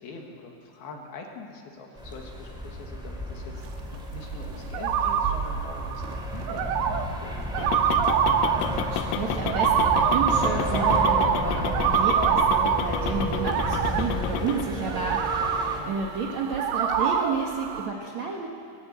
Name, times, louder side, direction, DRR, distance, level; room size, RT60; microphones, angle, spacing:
voice 1, 0.0-8.2 15.6-16.0, left 4 dB, 65° left, 2 dB, 3.3 m, -44 dB
sound 1, 2.0-15.8, equal, ahead, 1.9 m, -32 dB
sound 2, 3.6-17.9, right 8 dB, 85° right, 3.4 m, -26 dB
sound 3, 7.6-14.6, left 11 dB, 80° left, 2.7 m, -33 dB
voice 2, 8.7-18.5, right 5 dB, 60° right, -1 dB, 1.9 m, -31 dB
21.0 x 18.0 x 8.2 m, 2.3 s
omnidirectional pair, 5.3 m